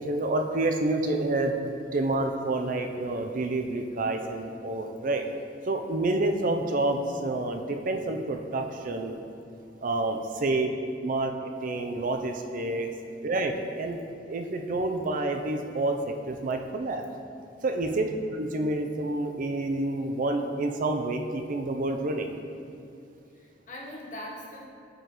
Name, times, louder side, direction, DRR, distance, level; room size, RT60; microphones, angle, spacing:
voice 1, 0.0-5.2 5.7-9.2 9.8-10.7 11.0-11.3 11.6-12.9 13.2-17.0 17.6-22.3, right 2 dB, 50° right, 4 dB, 0.5 m, -28 dB
voice 2, 6.0-6.3 9.6-9.8 17.9-18.2 23.3-24.6, left 1 dB, 45° left, -3 dB, 1.1 m, -43 dB
9.4 x 5.0 x 3.0 m, 2.5 s
head